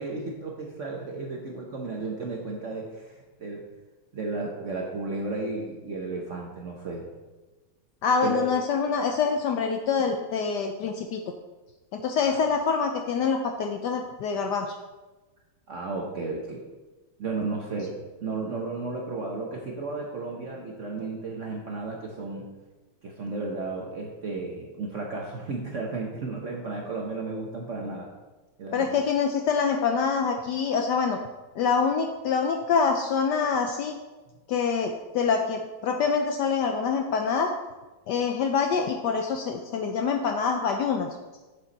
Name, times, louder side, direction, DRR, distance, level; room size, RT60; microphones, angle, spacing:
voice 1, 0.0-3.6 4.1-7.1 8.2-8.5 12.3-12.4 15.7-16.6 17.2-22.5 23.0-28.1 28.6-28.9, right 3 dB, 55° right, 0 dB, 0.9 m, -33 dB
voice 2, 8.0-11.2 11.9-14.8 28.7-31.2 31.6-33.9 34.5-37.5 38.1-41.1, left 5 dB, 75° left, 4 dB, 1.0 m, -25 dB
7.1 x 6.8 x 4.1 m, 1.2 s
omnidirectional pair, 2.2 m